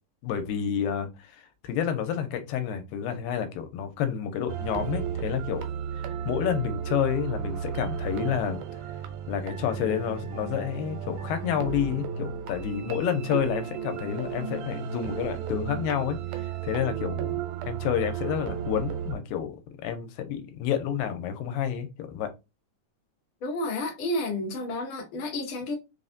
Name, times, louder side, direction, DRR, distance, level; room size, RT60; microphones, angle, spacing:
voice 1, 0.2-1.3 1.6-5.7 6.3-8.6 9.3-16.2 16.6-19.5 19.8-22.3, left 9 dB, 90° left, 2.3 m, -29 dB
sound 1, 4.5-19.1, right 9 dB, 90° right, 2.4 m, -34 dB
voice 2, 23.4-25.7, left 1 dB, 60° left, 1.3 m, -31 dB
5.3 x 2.1 x 2.6 m
omnidirectional pair, 4.0 m